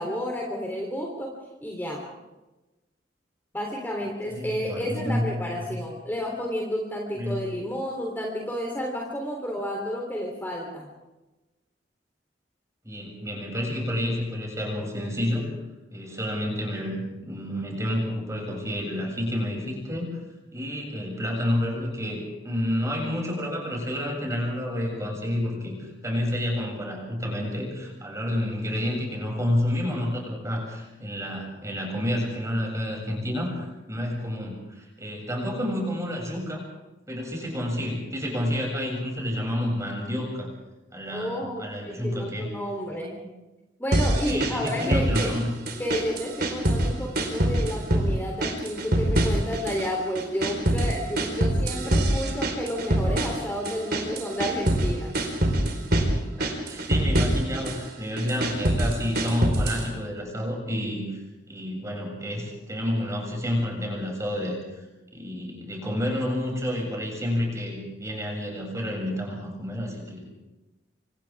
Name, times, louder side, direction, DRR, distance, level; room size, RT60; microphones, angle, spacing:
voice 1, 0.0-1.3 1.6-2.0 3.5-10.9 41.1-43.2 43.8-45.3 45.8-55.1, equal, 10° left, -1 dB, 3.5 m, -31 dB
voice 2, 4.3-5.3 5.7-5.8 7.1-7.4 12.8-15.5 15.9-20.2 20.5-36.6 37.1-40.5 40.9-42.5 44.3-45.5 56.4-61.2 61.5-64.8 65.1-70.3, left 1 dB, 15° right, 0 dB, 7.4 m, -29 dB
sound 1, 43.9-45.4 45.7-46.9 47.2-48.1 48.4-49.9 50.2-54.9 55.1-56.1 56.4-57.8 58.2-59.9, right 1 dB, 60° right, 4.5 m, -24 dB
29.0 x 26.0 x 3.7 m, 1.1 s
head